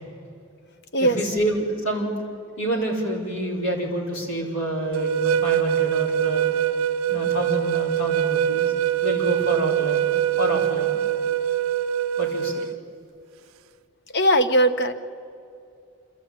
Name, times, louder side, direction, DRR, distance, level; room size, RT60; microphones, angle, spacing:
voice 1, 1.0-2.1 2.6-6.5 7.1-8.7 9.0-10.1 10.4-11.0 12.2-12.6, right 1 dB, 80° left, -1 dB, 4.6 m, -27 dB
sound 1, 4.9-12.7, right 10 dB, 80° right, 0.4 m, -23 dB
voice 2, 14.1-14.9, right 1 dB, 50° left, 10 dB, 1.0 m, -19 dB
27.0 x 13.5 x 8.8 m, 2.5 s
head